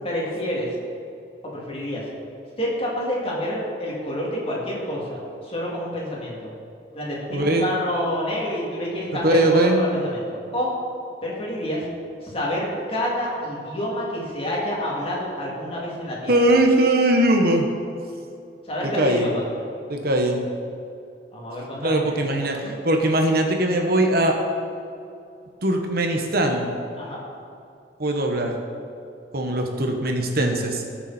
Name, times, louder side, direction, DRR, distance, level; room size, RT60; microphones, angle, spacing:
voice 1, 0.0-0.7 1.4-2.0 2.6-6.5 6.9-10.7 11.2-11.8 12.2-16.4 18.7-19.4 21.3-22.0 22.5-22.8 27.0-27.2, equal, 35° left, -5 dB, 3.2 m, -28 dB
voice 2, 7.3-7.7 9.2-9.8 16.3-17.7 18.8-19.3 19.9-20.4 21.8-24.3 25.6-26.7 28.0-28.5 29.3-30.8, right 1 dB, 60° right, 2 dB, 1.4 m, -20 dB
20.0 x 7.1 x 4.5 m, 2.5 s
head